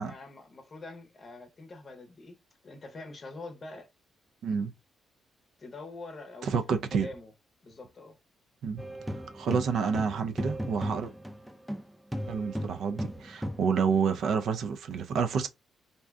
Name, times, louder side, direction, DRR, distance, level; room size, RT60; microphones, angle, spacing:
voice 1, 0.0-2.4 2.6-3.9 5.6-7.3 7.6-8.2, left 2 dB, 35° left, 0.7 m, -45 dB
voice 2, 6.4-7.1 8.6-8.8 9.3-11.1 12.3-15.5, right 6 dB, 70° right, 0.4 m, -29 dB
sound 1, 8.8-11.8 12.1-13.7, equal, ahead, 0.4 m, -36 dB
2.6 x 2.2 x 3.4 m
cardioid pair, 130°, 0 cm